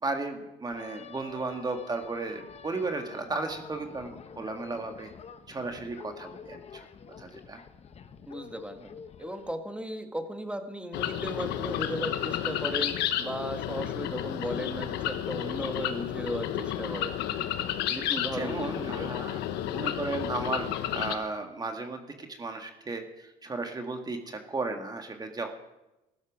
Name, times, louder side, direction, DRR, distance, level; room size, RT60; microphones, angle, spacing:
voice 1, 0.0-4.1 4.4-5.1 5.5-6.9 7.2-7.6 18.4-19.4 19.7-25.5, right 3 dB, 25° right, 5 dB, 1.8 m, -35 dB
sound 1, 0.7-9.5, left 6 dB, 40° left, 1.0 m, -48 dB
voice 2, 8.3-8.9 9.2-17.1 17.9-19.2, right 1 dB, 5° right, 7 dB, 1.6 m, -36 dB
sound 2, 10.9-21.1, left 11 dB, 85° left, 1.1 m, -31 dB
15.0 x 12.5 x 6.1 m, 0.97 s
cardioid pair, 110°, 17 cm